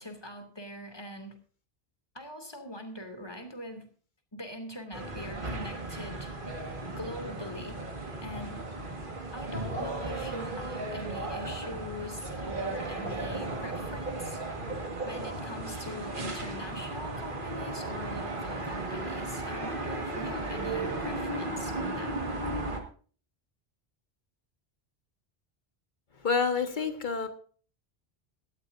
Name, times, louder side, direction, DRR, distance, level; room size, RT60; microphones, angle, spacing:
voice 1, 0.0-1.4 2.1-3.9 4.3-6.3 6.9-7.8 8.2-8.6 9.3-14.4 15.0-22.2, left 1 dB, 25° left, 5 dB, 2.5 m, -42 dB
sound 1, 4.9-22.8, right 2 dB, 55° right, 2.0 m, -35 dB
voice 2, 26.1-27.3, left 5 dB, 50° left, 7 dB, 1.6 m, -28 dB
17.5 x 13.5 x 2.6 m, 0.42 s
omnidirectional pair, 1.1 m